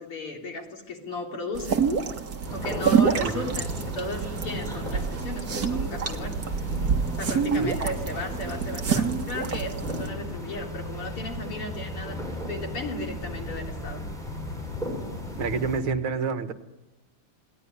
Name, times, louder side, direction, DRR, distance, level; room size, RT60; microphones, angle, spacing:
voice 1, 0.0-1.9 2.5-6.5 7.2-14.1, left 1 dB, 80° left, 1 dB, 4.4 m, -35 dB
sound 1, 1.5-10.1, right 6 dB, 45° right, 1.9 m, -27 dB
sound 2, 2.4-15.8, equal, ahead, 7.5 m, -35 dB
voice 2, 3.2-3.6 7.6-7.8 15.4-16.5, right 5 dB, 70° right, 8 dB, 2.2 m, -28 dB
29.5 x 19.5 x 9.9 m, 1.1 s
omnidirectional pair, 2.4 m